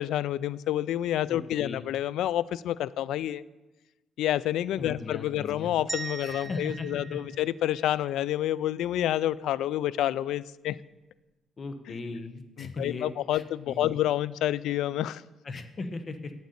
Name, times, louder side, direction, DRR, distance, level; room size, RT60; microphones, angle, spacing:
voice 1, 0.0-3.4 4.2-10.8 12.6-15.2, left 12 dB, 80° left, 20 dB, 0.3 m, -28 dB
voice 2, 1.3-1.9 4.8-5.7 6.2-7.2 11.6-14.0 15.4-16.3, left 3 dB, 40° left, 9 dB, 1.2 m, -38 dB
sound 1, 5.9-8.1, right 4 dB, 30° right, 0.7 m, -40 dB
8.2 x 7.7 x 8.7 m, 1.1 s
cardioid pair, 90°, 0 cm